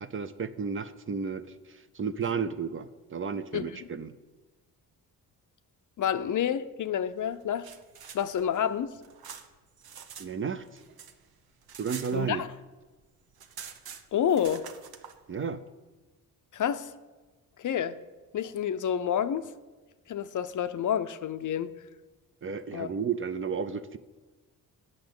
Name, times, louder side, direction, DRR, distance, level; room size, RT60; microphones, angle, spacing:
voice 1, 0.0-4.1 10.2-10.6 11.8-12.4 15.3-15.6 22.4-24.0, right 6 dB, 35° right, 0.6 m, -33 dB
voice 2, 6.0-7.7 8.1-9.0 12.1-12.5 14.1-14.7 16.5-16.9 17.6-18.0 18.3-19.5 20.1-21.7 22.7-22.9, left 9 dB, 55° left, 0.6 m, -29 dB
sound 1, 7.4-10.3 10.6-12.7 13.0-13.1 13.3-15.2, right 7 dB, 75° right, 1.0 m, -46 dB
8.7 x 6.3 x 8.0 m
cardioid pair, 80°, 37 cm